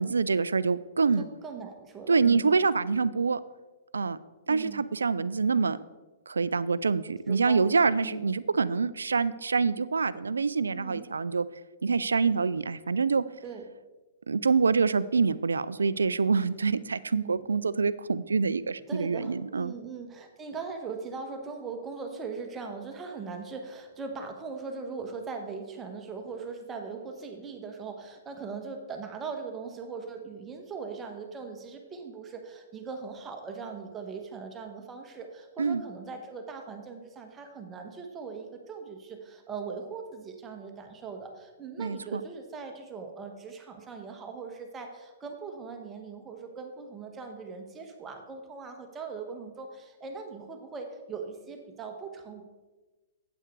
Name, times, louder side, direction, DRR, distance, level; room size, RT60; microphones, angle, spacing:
voice 1, 0.0-1.3 2.1-3.4 3.9-4.2 4.5-5.8 6.3-11.5 11.8-13.2 14.3-19.7 35.6-35.8 41.8-42.2, right 4 dB, 80° right, 17 dB, 0.4 m, -26 dB
voice 2, 1.2-2.5 4.5-4.8 7.3-7.7 8.0-8.3 10.7-11.1 13.4-13.6 17.1-17.4 18.9-52.4, right 5 dB, 20° right, 3 dB, 1.3 m, -40 dB
8.7 x 8.1 x 4.7 m, 1.2 s
figure-of-eight pair, 115°, 0 cm